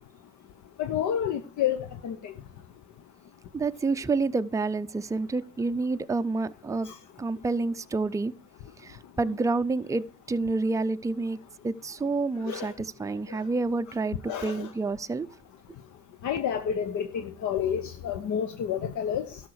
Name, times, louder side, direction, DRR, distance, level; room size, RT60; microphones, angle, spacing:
voice 1, 0.8-1.8 2.0-2.3 6.8-6.9 12.5-12.7 14.3-14.7 16.2-19.4, left 9 dB, 75° left, 0.9 m, -29 dB
voice 2, 3.5-6.9 7.2-8.3 8.8-11.4 11.6-14.2 14.4-15.3, right 3 dB, 10° right, 0.4 m, -28 dB
12.5 x 6.5 x 4.7 m
cardioid pair, 90°, 30 cm